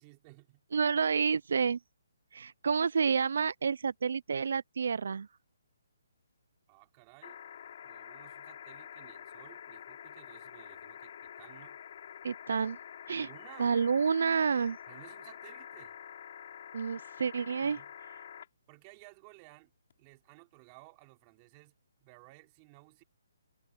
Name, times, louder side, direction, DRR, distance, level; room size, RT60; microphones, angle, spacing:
voice 1, 0.0-0.6 6.7-7.4 7.8-11.8 13.2-13.7 14.9-15.9 17.6-17.9 18.7-21.7 22.0-23.0, right 25 dB, 25° right, 3.1 m, -56 dB
voice 2, 0.7-1.8 2.3-5.3 12.2-12.8 13.1-13.3 13.6-14.8 16.7-17.8, right 6 dB, 65° right, 0.3 m, -29 dB
sound 1, 7.2-18.5 19.9-20.0, left 9 dB, 50° left, 4.3 m, -48 dB
hypercardioid pair, 160°, 0 cm